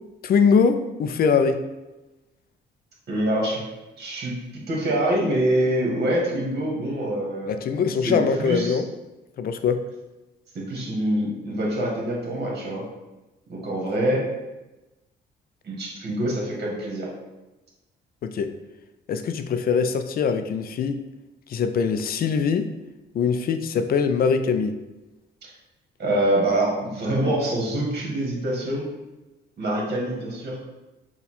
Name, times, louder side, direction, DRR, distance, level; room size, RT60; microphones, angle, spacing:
voice 1, 0.2-1.6 7.5-8.9 9.4-9.8 18.2-18.5 19.1-21.0 21.5-22.7 23.1-24.8, left 6 dB, 50° left, 9 dB, 0.4 m, -22 dB
voice 2, 3.1-3.6 4.0-7.6 8.0-8.8 10.5-12.8 13.5-14.3 15.6-17.1 25.4-25.5 26.0-28.9 29.6-30.6, right 1 dB, 55° right, -2 dB, 1.4 m, -25 dB
4.2 x 2.3 x 4.1 m, 1.1 s
cardioid pair, 90°, 20 cm